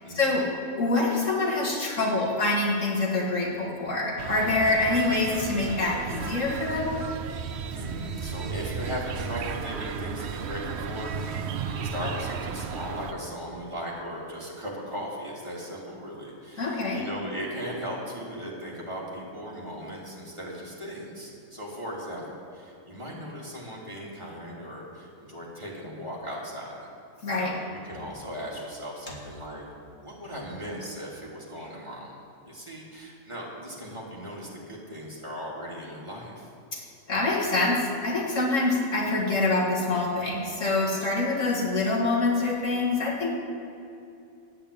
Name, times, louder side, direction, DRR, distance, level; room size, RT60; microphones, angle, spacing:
voice 1, 0.1-0.5 0.8-7.0 16.6-17.0 27.2-27.5 36.7-43.3, left 2 dB, 65° left, -2 dB, 2.2 m, -25 dB
sound 1, 4.2-13.1, right 6 dB, 60° right, 0.8 m, -34 dB
voice 2, 7.7-22.2 22.5-26.8 27.3-29.6 30.0-32.1 32.4-36.5, equal, 20° right, -5 dB, 3.2 m, -38 dB
12.0 x 8.6 x 8.7 m, 2.7 s
omnidirectional pair, 1.4 m